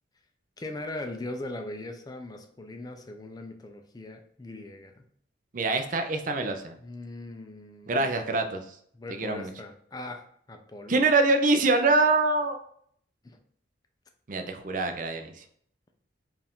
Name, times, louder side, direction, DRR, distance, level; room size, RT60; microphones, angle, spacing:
voice 1, 0.6-5.0 6.8-8.0 8.9-11.0 13.2-13.4, left 2 dB, 20° left, 5 dB, 0.4 m, -40 dB
voice 2, 5.5-6.7 7.9-8.8 9.1-9.5 10.9-12.6 14.3-15.4, right 3 dB, 45° right, 6 dB, 0.5 m, -25 dB
4.6 x 2.5 x 3.5 m, 0.64 s
head